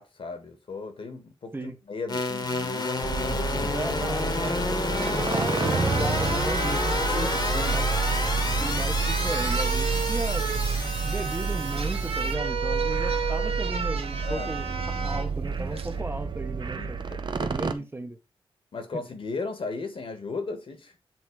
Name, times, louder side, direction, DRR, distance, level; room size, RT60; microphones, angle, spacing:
voice 1, 0.0-3.8 4.2-4.3 5.1-5.3 7.1-7.9 14.2-14.5 15.1-15.2 15.7-16.0 16.8-17.9 18.7-20.9, left 3 dB, 65° left, 1.7 m, -37 dB
sound 1, 2.1-12.3, left 3 dB, 45° left, 1.3 m, -30 dB
sound 2, 3.0-17.7, right 5 dB, 55° right, 0.7 m, -29 dB
voice 2, 3.7-6.8 7.7-7.9 8.6-10.5 11.0-17.0 17.5-18.2, right 2 dB, 20° right, 1.0 m, -35 dB
sound 3, 4.4-4.5 4.9-15.3 15.8-15.9, right 5 dB, 80° right, 1.0 m, -33 dB
7.9 x 3.1 x 4.7 m
cardioid pair, 80°, 10 cm